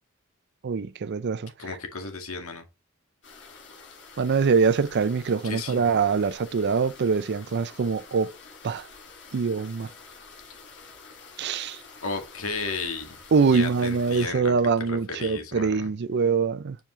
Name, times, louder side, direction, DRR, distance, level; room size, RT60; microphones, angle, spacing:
voice 1, 0.6-1.5 4.2-8.4 8.6-8.8 9.3-9.9 11.4-11.8 13.3-16.8, right 5 dB, 50° right, 0.4 m, -24 dB
voice 2, 1.6-2.7 5.4-5.9 12.0-13.2 13.5-14.5 14.9-15.9, left 4 dB, 80° left, 2.0 m, -34 dB
sound 1, 3.2-14.3, left 4 dB, 55° left, 2.4 m, -48 dB
7.5 x 5.1 x 3.1 m
head